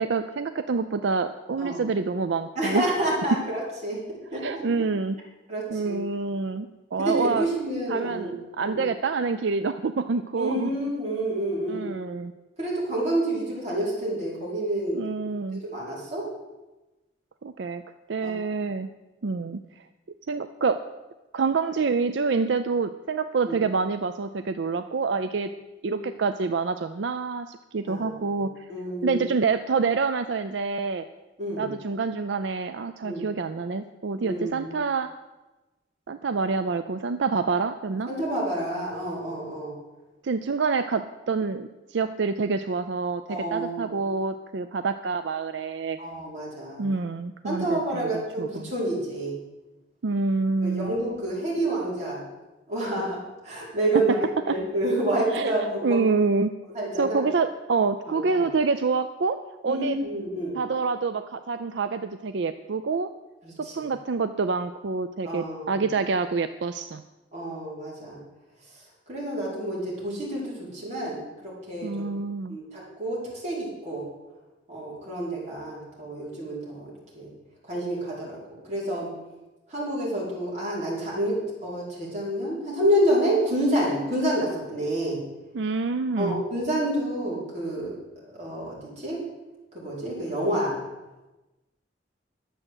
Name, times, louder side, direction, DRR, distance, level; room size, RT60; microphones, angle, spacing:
voice 1, 0.0-2.8 4.4-5.2 5.7-7.5 7.9-10.7 11.7-12.3 14.9-15.6 17.4-17.8 18.1-18.9 19.2-19.6 20.3-20.8 21.3-25.5 25.8-28.7 29.0-31.0 31.6-35.1 36.1-38.1 40.2-46.0 46.8-48.7 50.0-50.9 54.5-54.6 55.3-55.5 55.8-56.5 57.0-60.0 60.6-63.1 63.6-67.0 71.8-72.6 85.5-86.4, right 4 dB, 75° right, 10 dB, 0.5 m, -27 dB
voice 2, 2.5-4.0 4.3-4.6 5.5-6.0 7.0-8.3 8.6-8.8 10.4-12.0 12.6-15.1 15.6-16.3 18.2-18.3 23.4-23.6 25.9-26.0 27.9-28.1 28.7-29.3 31.4-31.7 33.0-33.3 34.2-34.7 38.1-39.7 43.3-43.9 46.0-46.9 47.4-49.3 50.6-52.2 52.7-53.2 53.4-54.2 54.4-56.1 56.7-57.2 58.1-58.5 59.6-60.6 63.4-63.7 65.2-65.9 67.3-68.2 69.1-72.0 72.5-74.0 74.7-76.9 77.1-77.3 77.6-78.3 78.6-79.1 79.7-85.2 86.2-89.2 89.7-90.7, right 1 dB, 40° right, -6 dB, 4.9 m, -28 dB
11.5 x 7.6 x 8.0 m, 1.1 s
head